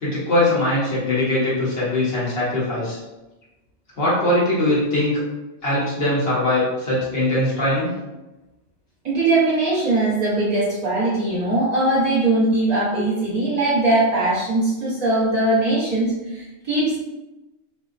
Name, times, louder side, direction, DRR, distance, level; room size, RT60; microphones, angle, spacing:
voice 1, 0.0-3.0 4.0-5.2 5.6-8.0, left 1 dB, 55° left, -7 dB, 1.1 m, -21 dB
voice 2, 9.0-17.0, right 2 dB, 35° right, -8 dB, 1.0 m, -20 dB
2.5 x 2.2 x 2.5 m, 1.0 s
omnidirectional pair, 1.3 m